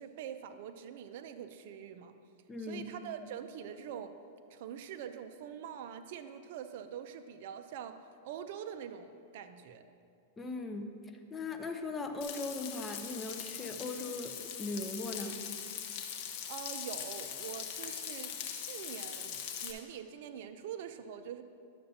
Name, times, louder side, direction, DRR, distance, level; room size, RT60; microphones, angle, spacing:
voice 1, 0.0-2.1 2.6-4.1 4.5-8.0 8.2-9.8 16.5-21.4, right 8 dB, 60° right, 8 dB, 0.5 m, -44 dB
voice 2, 2.5-2.9 10.4-10.9 11.3-15.5, left 2 dB, 15° left, 5 dB, 0.6 m, -39 dB
Frying (food), 12.2-19.7, left 8 dB, 50° left, 0.8 m, -41 dB
11.0 x 6.7 x 2.7 m, 2.4 s
hypercardioid pair, 135°, 0 cm